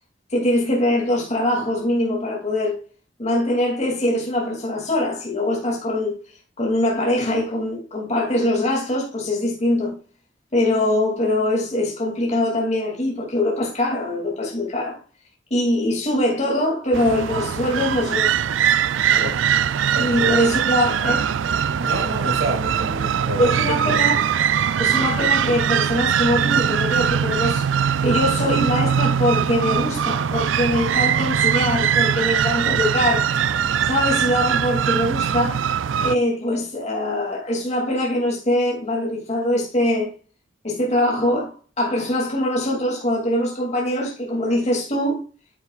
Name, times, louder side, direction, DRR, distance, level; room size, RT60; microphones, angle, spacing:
voice 1, 0.3-2.8 3.2-6.2 6.6-9.9 10.5-15.0 15.5-18.3 19.1-19.3 20.0-21.3 23.4-24.2 24.8-27.7 28.0-33.6 33.9-35.6 36.0-40.1 40.6-45.2, left 1 dB, 35° left, 2.6 m, -22 dB
sound 1, 16.9-36.2, right 8 dB, 85° right, 0.4 m, -21 dB
voice 2, 19.1-19.6 19.9-20.5 21.8-24.1, right 2 dB, 60° right, 2.5 m, -28 dB
10.5 x 8.4 x 2.4 m
head